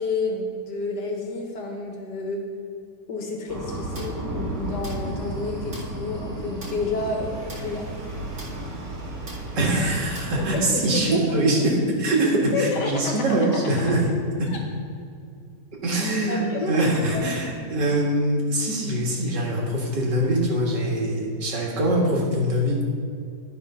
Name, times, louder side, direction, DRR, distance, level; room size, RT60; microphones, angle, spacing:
voice 1, 0.0-2.4 3.1-7.9 10.4-11.5 12.5-13.1 13.5-13.9 16.3-16.9 17.1-17.3, left 3 dB, 75° left, 1 dB, 1.9 m, -30 dB
sound 1, 3.5-10.6, right 1 dB, 60° right, 2.5 m, -33 dB
voice 2, 9.6-14.1 14.4-14.5 15.8-22.8, right 1 dB, 90° right, -2 dB, 2.3 m, -23 dB
12.0 x 5.0 x 5.4 m, 2.3 s
omnidirectional pair, 1.8 m